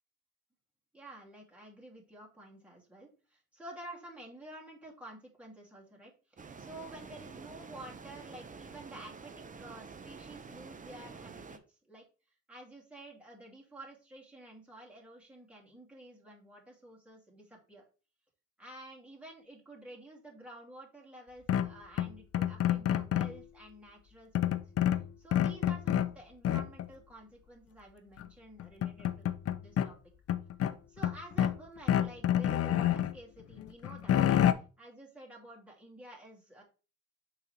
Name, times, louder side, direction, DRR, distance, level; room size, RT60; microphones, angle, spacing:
voice 1, 0.9-9.3 9.6-12.1 12.5-17.8 18.6-24.6 25.2-29.3 29.6-30.0 30.9-34.4 34.8-36.6, right 1 dB, 5° right, -3 dB, 2.7 m, -51 dB
sound 1, 6.4-11.6, right 5 dB, 25° right, 0.7 m, -48 dB
sound 2, 21.5-23.4 24.4-26.1 26.4-26.9 28.2-28.3 28.6-29.9 30.3-31.6 31.9-33.1 33.6-34.5, left 10 dB, 50° left, 0.6 m, -28 dB
5.8 x 3.9 x 4.5 m, 0.34 s
cardioid pair, 90°, 30 cm